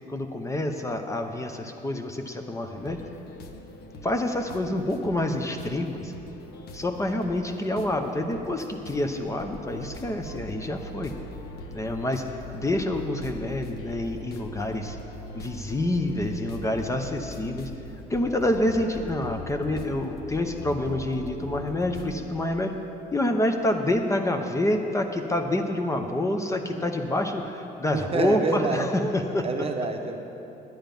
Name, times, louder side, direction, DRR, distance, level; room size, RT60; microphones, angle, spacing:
voice 1, 0.1-3.0 4.0-6.1 6.7-11.1 11.7-12.2 12.5-15.0 15.3-17.7 18.1-22.7 23.1-29.5, left 1 dB, 15° left, 5 dB, 0.8 m, -27 dB
sound 1, 2.7-22.1, left 1 dB, 70° left, 0.9 m, -41 dB
voice 2, 27.9-28.9 29.4-30.2, right 4 dB, 35° right, 4 dB, 0.9 m, -27 dB
11.0 x 9.1 x 5.3 m, 2.9 s
cardioid pair, 110°, 17 cm